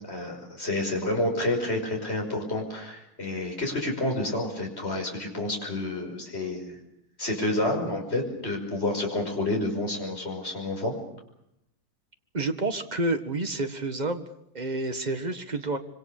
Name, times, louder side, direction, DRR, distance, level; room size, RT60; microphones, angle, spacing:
voice 1, 0.1-6.8 7.2-10.9, left 1 dB, 30° left, 1 dB, 6.0 m, -29 dB
voice 2, 12.3-14.2 14.5-15.8, right 2 dB, 25° right, 7 dB, 1.7 m, -29 dB
26.0 x 25.0 x 6.7 m, 0.79 s
omnidirectional pair, 2.0 m